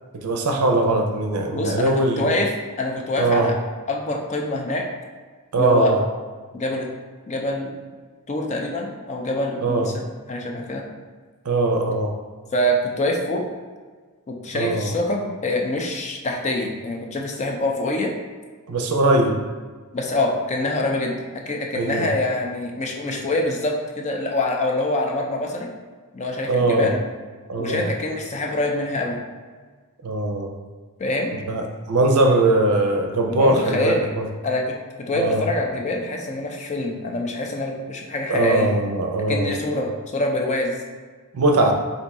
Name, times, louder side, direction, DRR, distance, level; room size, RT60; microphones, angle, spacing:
voice 1, 0.1-2.3 3.2-3.5 5.5-6.0 9.6-9.9 11.4-12.1 14.5-14.9 18.7-19.4 21.7-22.1 26.5-27.0 27.5-27.9 30.0-30.5 31.5-34.3 35.1-35.4 38.3-39.5 41.3-41.7, right 2 dB, 80° right, 3 dB, 0.5 m, -20 dB
voice 2, 1.5-2.5 2.8-3.5 3.9-4.8 5.6-5.9 6.5-6.9 7.3-7.7 8.3-10.9 12.5-13.4 14.3-18.1 19.9-25.7 26.1-27.0 27.6-29.2 31.0-31.3 33.3-34.1 34.4-38.7 39.3-40.8, left 1 dB, 30° left, 1 dB, 0.4 m, -25 dB
3.5 x 2.6 x 4.1 m, 1.4 s
head